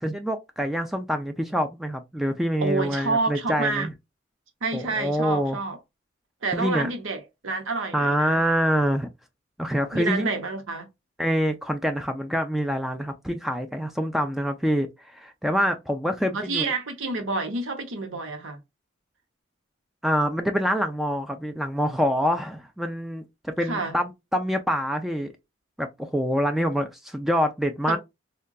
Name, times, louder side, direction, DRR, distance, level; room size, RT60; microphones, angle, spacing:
voice 1, 0.0-3.9 4.7-5.6 6.5-6.9 7.9-9.1 9.6-10.3 11.2-16.7 20.0-25.3 25.8-28.0, equal, ahead, 0.3 m, -26 dB
voice 2, 2.6-3.9 4.6-5.8 6.4-8.4 9.9-10.9 16.3-18.6 23.6-24.0 27.9-28.0, right 3 dB, 85° right, 0.8 m, -28 dB
3.7 x 2.2 x 2.2 m
head